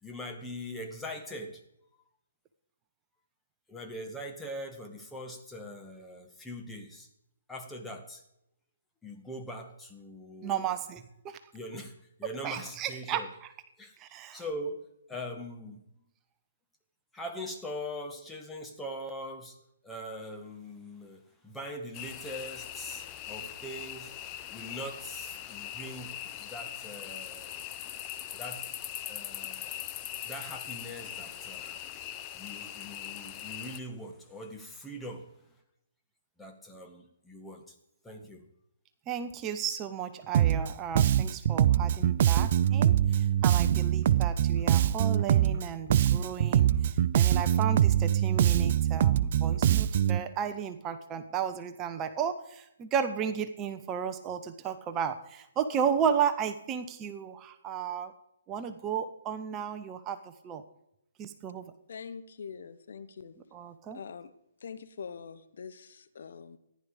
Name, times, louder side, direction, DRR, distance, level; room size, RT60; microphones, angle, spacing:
voice 1, 0.0-1.6 3.7-7.1 7.5-8.2 9.0-10.7 11.5-13.3 13.8-14.8 15.1-15.9 17.1-19.6 19.8-24.1 24.5-27.7 28.3-28.7 29.1-29.8 30.2-31.9 32.3-35.3 36.4-37.8 38.0-38.5, equal, 5° left, 2 dB, 1.8 m, -42 dB
voice 2, 10.4-11.4 12.4-13.2 14.0-14.4 39.1-46.7 47.1-58.1 58.5-60.2 60.4-60.6 61.2-61.7 63.5-64.0, right 7 dB, 20° right, 9 dB, 1.0 m, -33 dB
sound 1, 21.9-33.8, left 11 dB, 25° left, 0.9 m, -41 dB
Bass guitar, 40.3-40.7 41.0-45.6 45.9-50.2, right 11 dB, 45° right, 0.5 m, -24 dB
voice 3, 61.9-63.3 63.9-64.3 64.6-66.6, left 6 dB, 60° left, 11 dB, 1.1 m, -44 dB
14.5 x 11.0 x 5.0 m, 0.80 s
figure-of-eight pair, 135°, 0 cm